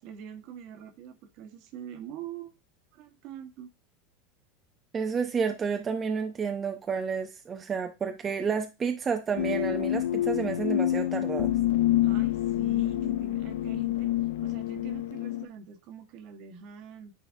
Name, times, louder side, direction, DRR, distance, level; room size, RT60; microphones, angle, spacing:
voice 1, 0.0-2.5 2.9-3.7 12.0-14.1 14.4-17.1, right 8 dB, 55° right, 1.3 m, -44 dB
voice 2, 4.9-11.5, right 6 dB, 25° right, 0.6 m, -30 dB
sound 1, 9.4-15.4, left 13 dB, 85° left, 0.5 m, -27 dB
9.7 x 4.0 x 2.7 m
supercardioid pair, 115°, 0 cm